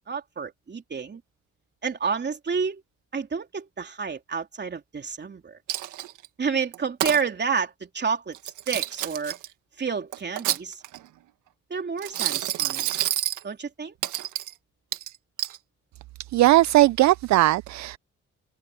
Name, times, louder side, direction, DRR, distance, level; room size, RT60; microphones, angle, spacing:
voice 1, 0.1-1.2 1.8-2.8 3.1-5.6 6.4-8.4 8.7-9.4 9.8-10.8 11.7-12.9 13.4-13.9, right 5 dB, 35° right, 3.3 m, -29 dB
Coin (dropping), 5.7-6.3 6.7-7.2 8.3-9.5 10.1-11.1 12.0-13.4 14.0-14.5 14.9-15.6, right 14 dB, 90° right, 1.8 m, -28 dB
voice 2, 16.3-18.0, right 16 dB, 65° right, 0.5 m, -18 dB
cardioid pair, 90°, 30 cm